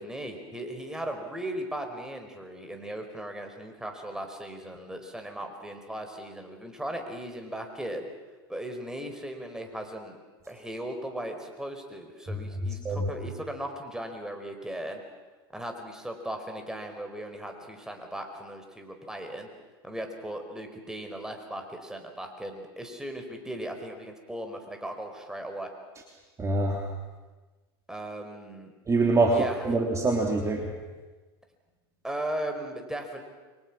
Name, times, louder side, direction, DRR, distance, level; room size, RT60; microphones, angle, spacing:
voice 1, 0.0-8.1 8.5-10.2 10.5-15.0 15.5-19.5 19.8-25.7 27.9-28.7 29.3-29.7 32.0-33.2, right 1 dB, 5° right, 4 dB, 4.8 m, -37 dB
voice 2, 12.6-13.1 26.4-26.9 28.9-29.4 29.6-30.7, right 2 dB, 25° right, 1 dB, 3.3 m, -25 dB
29.5 x 23.5 x 6.2 m, 1.3 s
hypercardioid pair, 90°, 13 cm